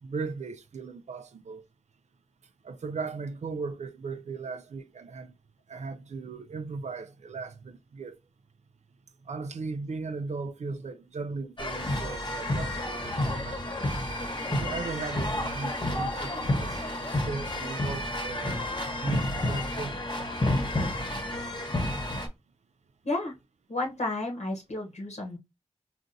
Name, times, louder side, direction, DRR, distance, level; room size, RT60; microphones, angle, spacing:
voice 1, 0.0-1.6 2.6-5.3 5.7-8.2 9.3-13.6 14.5-18.6 19.0-20.0, right 4 dB, 80° right, 0.4 m, -37 dB
sound 1, 11.6-22.3, left 1 dB, 40° left, 1.0 m, -30 dB
voice 2, 23.0-23.3 23.7-25.4, left 2 dB, 75° left, 0.9 m, -32 dB
3.7 x 2.5 x 2.6 m
cardioid pair, 45°, 12 cm